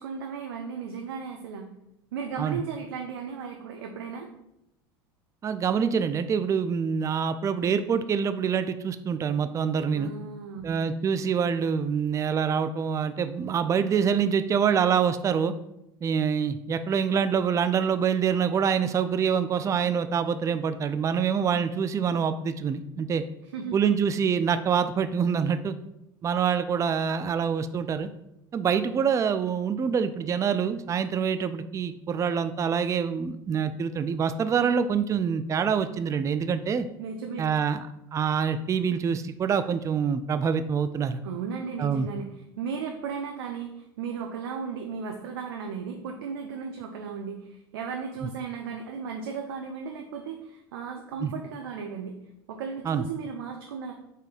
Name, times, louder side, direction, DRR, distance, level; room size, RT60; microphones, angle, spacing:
voice 1, 0.0-1.7 2.1-4.3 9.9-10.7 23.5-23.7 37.0-37.5 41.2-52.1 52.5-53.9, right 6 dB, 85° right, 2 dB, 0.5 m, -35 dB
voice 2, 5.4-10.1 10.6-15.5 16.0-23.2 23.7-25.7 26.2-28.1 28.5-36.9 37.4-37.9 38.1-41.2 41.8-42.1 51.2-51.3 52.9-53.0, right 7 dB, 25° right, 10 dB, 0.3 m, -26 dB
4.0 x 2.7 x 4.9 m, 0.85 s
hypercardioid pair, 85°, 12 cm